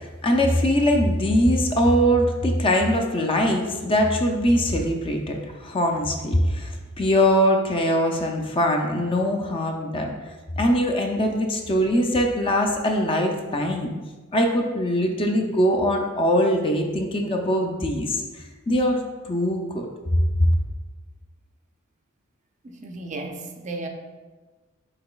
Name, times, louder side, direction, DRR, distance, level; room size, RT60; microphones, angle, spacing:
voice 1, 0.2-6.7 7.0-10.1 10.6-14.0 14.3-18.2 18.7-19.9, equal, 25° left, 2 dB, 0.4 m, -22 dB
voice 2, 22.6-23.9, right 2 dB, 35° right, 3 dB, 0.4 m, -34 dB
5.7 x 3.7 x 2.3 m, 1.3 s
head